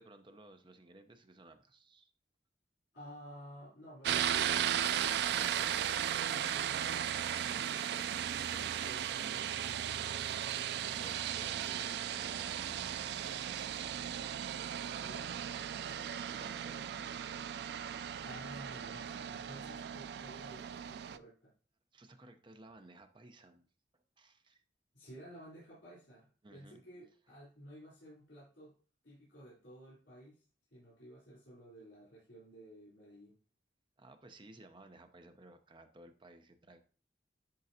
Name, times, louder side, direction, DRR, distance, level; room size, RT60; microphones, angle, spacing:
voice 1, 0.0-2.1 10.7-13.1 15.3-17.5 21.9-23.7 23.9-24.6 26.4-26.8 34.0-36.8, right 2 dB, 30° right, 8 dB, 0.7 m, -58 dB
voice 2, 2.9-7.2 8.8-9.5 15.0-15.3 18.2-21.5 24.9-28.8 29.0-30.4 30.7-33.4, equal, 80° left, -8 dB, 3.4 m, -53 dB
sound 1, 4.0-21.2, right 9 dB, 65° right, 0.3 m, -36 dB
10.5 x 3.9 x 2.8 m, 0.39 s
head